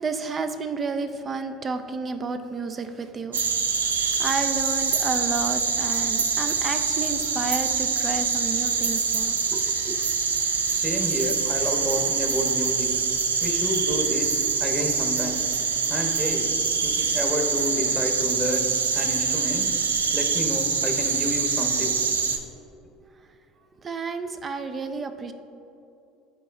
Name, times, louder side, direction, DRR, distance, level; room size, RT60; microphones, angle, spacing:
voice 1, 0.0-3.4 3.8-10.1 23.8-25.3, right 4 dB, 35° right, 8 dB, 0.5 m, -31 dB
sound 1, 3.3-22.4, right 5 dB, 90° right, 0.4 m, -25 dB
voice 2, 10.7-12.9 13.4-15.4 15.9-16.5 16.8-18.7 18.9-19.6 20.1-22.2, equal, 15° right, 1 dB, 1.3 m, -30 dB
11.0 x 3.9 x 2.6 m, 2.7 s
hypercardioid pair, 70°, 0 cm